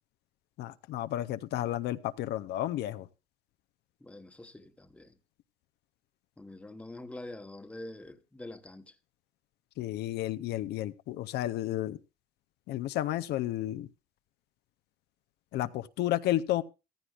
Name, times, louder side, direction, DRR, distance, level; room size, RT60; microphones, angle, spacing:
voice 1, 0.6-3.1 9.8-12.0 12.7-13.9 15.5-16.6, left 14 dB, 75° left, 0.6 m, -32 dB
voice 2, 4.0-5.2 6.4-9.0, left 1 dB, 5° left, 1.1 m, -45 dB
14.5 x 14.5 x 2.4 m
cardioid pair, 110°, 17 cm